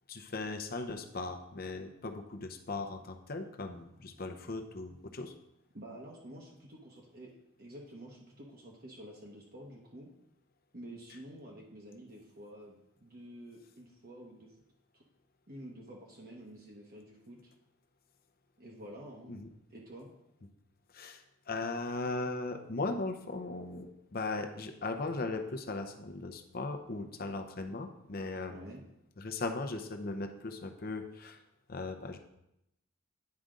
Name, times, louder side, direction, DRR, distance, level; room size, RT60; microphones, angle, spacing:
voice 1, 0.1-5.3 19.3-19.5 20.9-28.6 29.2-31.4 31.7-32.2, left 3 dB, 45° left, 6 dB, 0.7 m, -38 dB
voice 2, 5.7-7.3 7.6-10.1 10.7-12.8 13.0-14.5 14.9-15.0 15.5-17.5 18.6-19.4 19.7-20.1 28.5-28.8, right 1 dB, 45° right, -1 dB, 1.0 m, -49 dB
9.5 x 5.0 x 3.8 m, 0.84 s
head